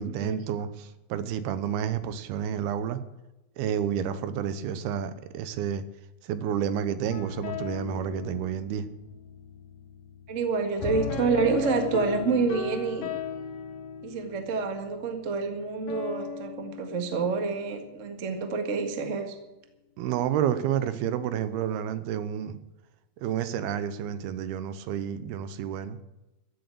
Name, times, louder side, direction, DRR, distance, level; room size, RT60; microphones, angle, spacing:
voice 1, 0.0-3.0 3.6-5.8 6.2-8.9 20.0-22.6 23.2-26.0, right 9 dB, 85° right, 13 dB, 2.8 m, -30 dB
sound 1, 7.1-17.9, left 5 dB, 60° left, 2.1 m, -37 dB
voice 2, 10.3-13.1 14.0-19.4, right 4 dB, 50° right, 6 dB, 0.9 m, -28 dB
15.0 x 8.0 x 8.4 m, 1.0 s
omnidirectional pair, 4.5 m